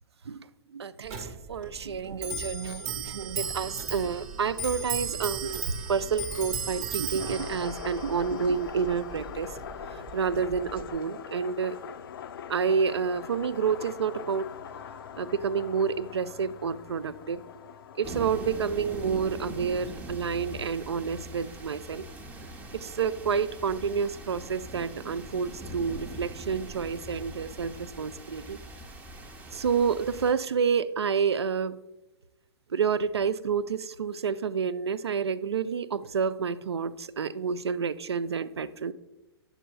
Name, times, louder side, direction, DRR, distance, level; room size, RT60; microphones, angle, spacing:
voice 1, 0.7-5.6 5.9-9.5 10.1-11.8 12.5-14.5 15.2-17.4 18.0-22.0 22.7-28.6 29.5-31.8 32.7-38.9, right 6 dB, 75° right, 16 dB, 0.4 m, -29 dB
Clock, 1.1-11.0, right 5 dB, 40° right, 0.9 m, -36 dB
sound 1, 7.2-20.0, left 8 dB, 55° left, 0.4 m, -43 dB
sound 2, 18.0-30.3, right 1 dB, 10° right, 0.6 m, -42 dB
9.8 x 6.7 x 2.3 m, 0.99 s
figure-of-eight pair, 110°, 14 cm